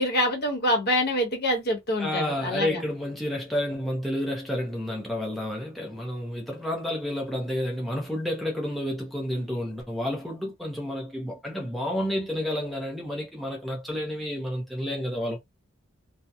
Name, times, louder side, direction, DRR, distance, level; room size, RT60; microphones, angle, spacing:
voice 1, 0.0-2.8, left 1 dB, 50° left, 1.0 m, -25 dB
voice 2, 2.0-15.4, left 1 dB, ahead, 0.5 m, -30 dB
2.7 x 2.0 x 2.3 m
head